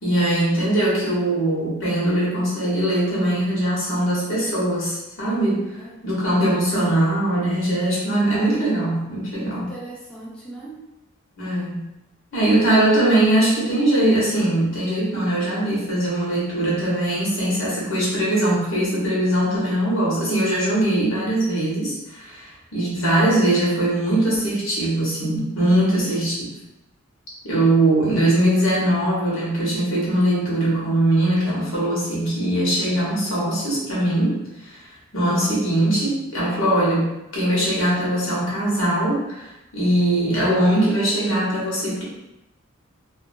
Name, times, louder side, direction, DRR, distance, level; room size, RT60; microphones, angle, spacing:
voice 1, 0.0-5.6 6.0-9.7 11.4-11.8 12.3-26.5 27.4-34.8 35.1-42.0, right 1 dB, 75° left, -6 dB, 1.2 m, -21 dB
voice 2, 9.3-10.8 25.6-26.2, right 2 dB, 5° left, -6 dB, 0.4 m, -39 dB
2.6 x 2.5 x 2.6 m, 0.93 s
head